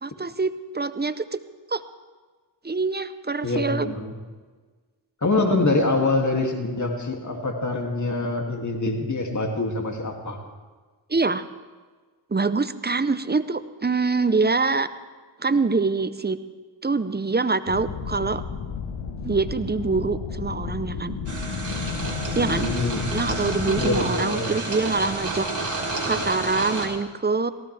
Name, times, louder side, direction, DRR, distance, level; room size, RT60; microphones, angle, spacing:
voice 1, 0.0-1.4 1.7-1.8 2.6-3.9 11.1-11.4 12.3-14.9 15.4-16.4 16.8-18.4 19.2-21.2 22.3-22.7 23.1-25.5 26.0-27.5, right 4 dB, 20° right, 13 dB, 0.7 m, -25 dB
voice 2, 3.4-4.1 5.2-10.4 22.3-23.0 23.8-24.5, left 2 dB, 35° left, 2 dB, 2.6 m, -25 dB
sound 1, 17.7-24.0, left 6 dB, 75° left, 1.3 m, -32 dB
sound 2, 21.3-26.9, right 2 dB, 35° right, 3.4 m, -30 dB
18.0 x 15.0 x 3.4 m, 1.4 s
cardioid pair, 50°, 49 cm